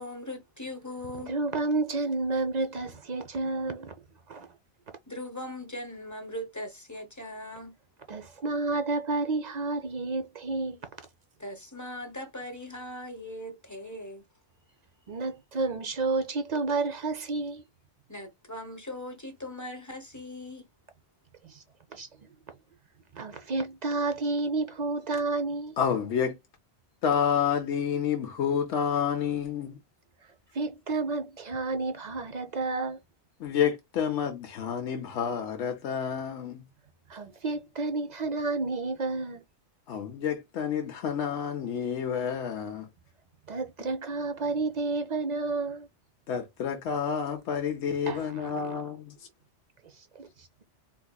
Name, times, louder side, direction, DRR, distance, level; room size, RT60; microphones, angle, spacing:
voice 1, 0.0-1.3 5.1-7.8 11.4-14.2 18.1-20.7, left 1 dB, 20° left, 0.7 m, -40 dB
voice 2, 1.3-3.9 4.3-4.5 8.1-10.8 15.1-17.6 21.4-21.6 21.9-22.3 23.1-25.8 30.5-33.0 37.1-39.4 43.5-45.9 48.1-48.7 49.9-50.5, right 3 dB, 50° right, 0.5 m, -31 dB
voice 3, 25.8-26.3 27.0-29.8 33.4-36.6 39.9-42.9 46.3-49.2, left 8 dB, 85° left, 1.0 m, -29 dB
3.9 x 2.7 x 2.2 m
omnidirectional pair, 1.1 m